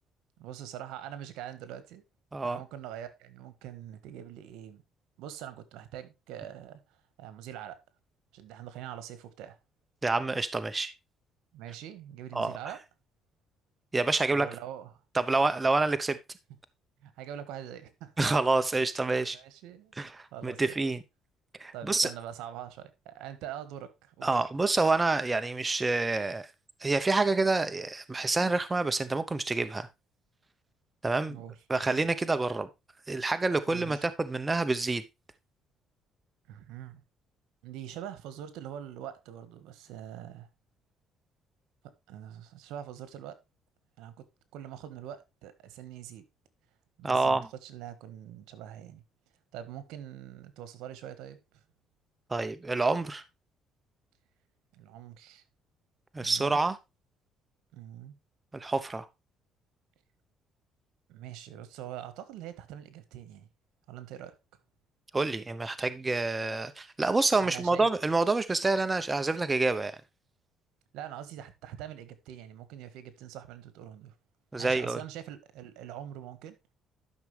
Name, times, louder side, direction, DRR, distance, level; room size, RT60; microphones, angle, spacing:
voice 1, 0.4-2.0 2.4-4.8 5.2-7.8 8.3-9.6 11.5-12.8 14.3-14.9 17.0-18.1 19.3-19.9 20.3-20.8 21.7-24.4 31.3-31.6 33.7-34.1 36.5-37.0 37.6-40.5 42.1-43.4 44.0-44.3 44.5-46.3 47.0-49.0 49.5-51.6 54.7-55.4 56.2-56.6 57.7-58.2 61.1-63.5 63.9-64.4 67.4-67.9 70.9-74.1 74.6-76.6, right 10 dB, 90° right, 1.4 m, -43 dB
voice 2, 10.0-10.9 12.3-12.6 13.9-14.5 15.1-16.2 18.2-19.4 20.0-21.0 21.6-22.1 24.2-26.5 26.8-29.9 31.0-31.4 31.7-32.7 33.1-35.0 47.0-47.5 52.3-53.2 56.1-56.8 58.5-59.1 65.1-70.0 74.5-75.0, right 3 dB, 20° right, 0.8 m, -27 dB
12.0 x 6.1 x 3.3 m
cardioid pair, 105°, 0 cm